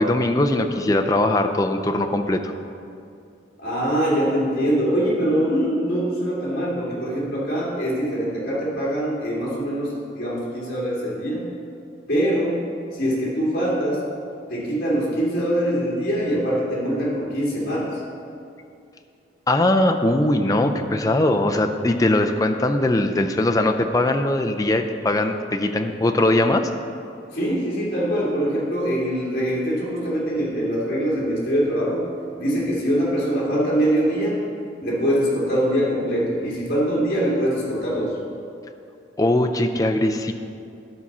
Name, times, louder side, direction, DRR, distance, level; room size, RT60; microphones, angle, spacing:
voice 1, 0.0-2.5 19.5-26.7 39.2-40.3, left 1 dB, 20° left, 5 dB, 0.4 m, -20 dB
voice 2, 3.6-11.5 12.1-12.6 12.9-14.0 14.5-17.9 27.3-32.1 32.4-34.4 34.8-38.2, equal, 50° left, -7 dB, 2.5 m, -23 dB
12.0 x 4.2 x 6.0 m, 2.5 s
head